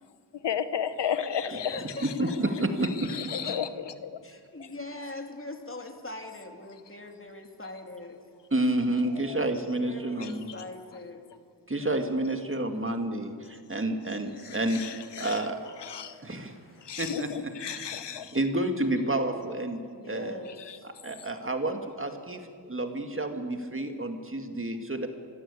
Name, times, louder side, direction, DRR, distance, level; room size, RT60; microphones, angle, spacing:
voice 1, 0.4-2.2 3.0-4.2 4.6-4.7 9.1-9.5 10.2-10.6 14.4-15.5 15.8-16.2 16.8-18.4 20.5-20.8, left 8 dB, 80° left, 12 dB, 1.0 m, -34 dB
voice 2, 1.5-2.8 3.2-3.6 4.2-8.2 9.8-11.2 15.2-15.3 15.8-17.0 19.9-20.9, left 2 dB, 30° left, 4 dB, 3.1 m, -43 dB
voice 3, 2.0-3.1 3.4-3.5 8.5-10.5 11.7-15.6 16.2-16.5 17.0-17.3 17.6-17.8 18.3-19.8 20.1-20.4 20.8-25.1, right 1 dB, 30° right, 6 dB, 2.2 m, -30 dB
25.0 x 15.5 x 8.5 m, 2.2 s
wide cardioid pair, 70°, 41 cm